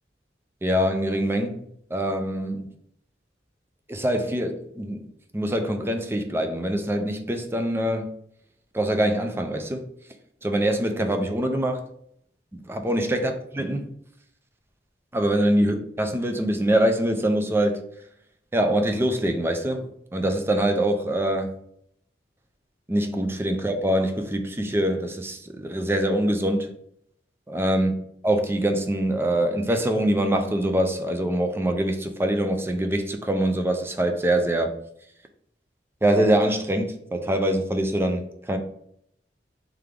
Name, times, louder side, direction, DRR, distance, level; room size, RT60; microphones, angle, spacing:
voice 1, 0.6-1.6 1.9-2.6 3.9-5.1 5.3-8.1 8.7-9.8 10.4-11.8 12.5-13.9 15.1-17.8 18.5-21.5 22.9-26.7 27.5-27.9 28.2-34.7 36.0-38.6, right 1 dB, 15° right, 0.4 m, -24 dB
3.4 x 3.3 x 3.6 m
head